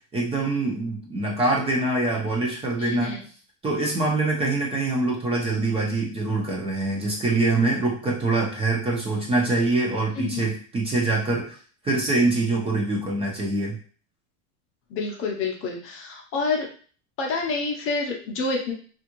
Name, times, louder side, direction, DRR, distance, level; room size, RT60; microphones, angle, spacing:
voice 1, 0.1-3.2 3.6-11.6 11.8-13.8, right 2 dB, 15° right, -3 dB, 0.6 m, -24 dB
voice 2, 2.8-3.2 10.2-10.4 14.9-16.7 17.2-18.7, left 4 dB, 35° left, 1 dB, 0.7 m, -28 dB
3.4 x 2.5 x 2.9 m, 0.42 s
supercardioid pair, 145°, 37 cm